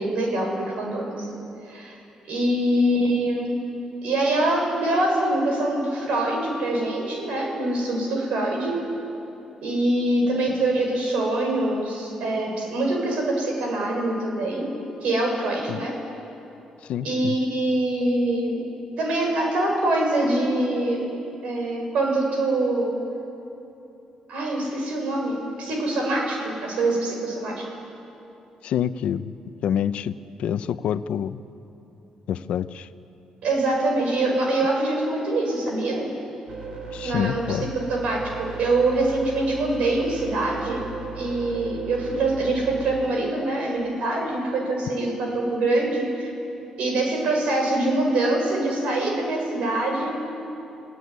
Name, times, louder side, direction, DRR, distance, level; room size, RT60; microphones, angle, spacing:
voice 1, 0.0-1.3 1.7-1.9 2.3-3.5 4.0-8.8 9.6-14.7 15.0-15.9 17.0-18.6 19.0-21.1 21.4-22.9 24.3-27.6 33.4-36.1 37.0-37.6 37.9-40.8 41.2-46.3 46.8-50.1, right 2 dB, 80° right, 1 dB, 6.7 m, -24 dB
voice 2, 16.9-17.4 28.6-29.3 29.6-31.4 32.3-32.9 36.9-37.7, left 9 dB, 75° left, 12 dB, 0.8 m, -27 dB
sound 1, 36.5-43.1, right 5 dB, 40° right, 3.6 m, -35 dB
30.0 x 17.0 x 9.7 m, 2.9 s
cardioid pair, 130°, 2 cm